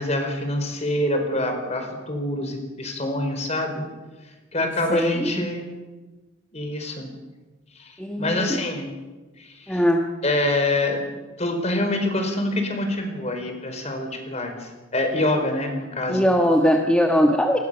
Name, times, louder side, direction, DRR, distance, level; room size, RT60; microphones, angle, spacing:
voice 1, 0.0-3.8 4.5-5.6 6.5-7.1 7.7-8.9 9.4-9.8 10.2-11.0 11.4-16.2, left 1 dB, 35° left, 5 dB, 4.6 m, -26 dB
voice 2, 4.9-5.5 8.0-8.6 9.7-10.0 16.1-17.6, equal, 5° left, 2 dB, 1.5 m, -20 dB
27.5 x 20.5 x 6.9 m, 1.2 s
head